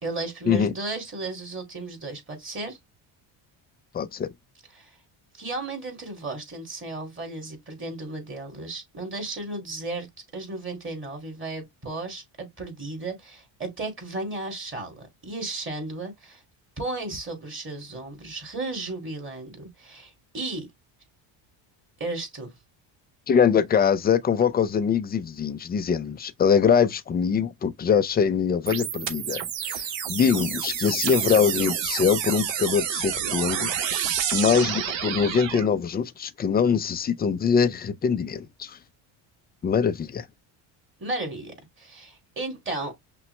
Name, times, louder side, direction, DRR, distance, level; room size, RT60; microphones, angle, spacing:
voice 1, 0.0-2.8 4.7-5.0 5.3-10.1 10.3-16.4 16.8-20.7 22.0-22.5 41.0-42.9, right 2 dB, 25° right, 2.2 m, -34 dB
voice 2, 3.9-4.3 23.3-33.7 34.3-38.8 39.6-40.3, left 7 dB, 20° left, 0.3 m, -23 dB
sound 1, 28.7-35.7, right 9 dB, 60° right, 1.1 m, -29 dB
5.8 x 2.2 x 3.1 m
cardioid pair, 105°, 49 cm